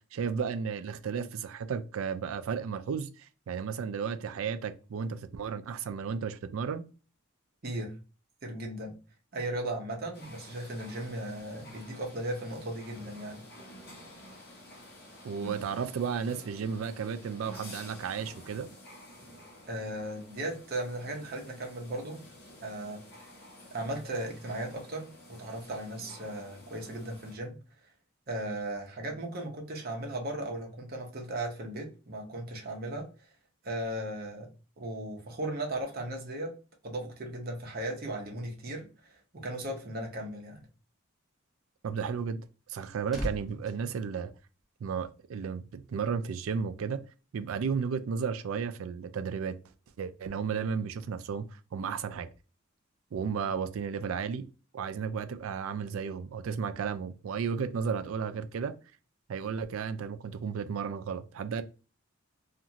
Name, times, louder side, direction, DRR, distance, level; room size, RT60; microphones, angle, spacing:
voice 1, 0.0-6.8 15.2-18.7 41.8-42.4 42.7-44.3 44.8-47.0 47.3-49.5 50.0-51.4 51.7-52.3 53.1-54.5 54.7-58.7 59.3-61.6, right 6 dB, 75° right, 0.4 m, -33 dB
voice 2, 7.6-8.0 8.4-9.0 9.3-13.4 19.7-22.2 22.6-23.3 23.7-27.6 28.3-33.1 33.6-34.5 34.8-36.5 36.8-40.7, right 1 dB, 45° right, 0.8 m, -37 dB
sound 1, 10.1-27.4, equal, 50° left, 1.0 m, -50 dB
sound 2, 42.6-45.0 45.3-45.6, equal, ahead, 0.7 m, -41 dB
2.5 x 2.5 x 2.9 m
head